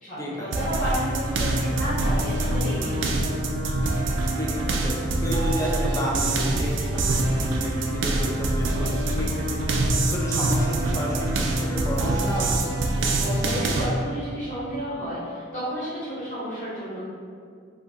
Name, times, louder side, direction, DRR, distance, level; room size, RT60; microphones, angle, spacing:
voice 1, 0.0-3.4 13.2-17.0, equal, 40° left, -11 dB, 1.1 m, -31 dB
sound 1, 0.5-13.9, right 2 dB, 80° right, 0.4 m, -25 dB
voice 2, 4.3-4.9 5.2-12.6, equal, 15° left, -4 dB, 0.5 m, -31 dB
2.8 x 2.7 x 3.6 m, 2.2 s
head